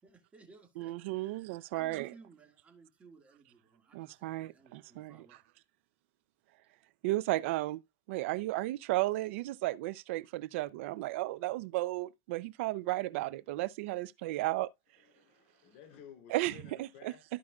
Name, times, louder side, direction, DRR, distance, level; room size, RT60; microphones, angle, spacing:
voice 1, 0.0-5.4, right 4 dB, 20° right, 1.9 m, -59 dB
voice 2, 0.8-2.1 3.9-5.3 7.0-7.8 8.1-14.7 16.3-17.1, right 18 dB, 75° right, 0.5 m, -34 dB
voice 3, 15.0-17.3, left 8 dB, 65° left, 3.2 m, -55 dB
14.0 x 4.9 x 2.3 m
supercardioid pair, 135°, 7 cm